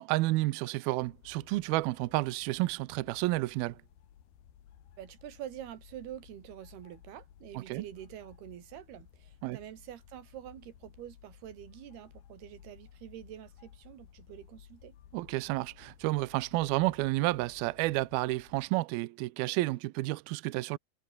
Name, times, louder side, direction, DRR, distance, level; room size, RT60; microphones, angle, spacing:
voice 1, 0.0-3.8 7.6-7.8 9.4-9.6 15.1-20.8, right 19 dB, 85° right, 2.2 m, -31 dB
sound 1, 1.0-18.7, left 10 dB, 60° left, 4.0 m, -57 dB
voice 2, 5.0-15.0, right 11 dB, 65° right, 3.7 m, -46 dB
omnidirectional pair, 5.1 m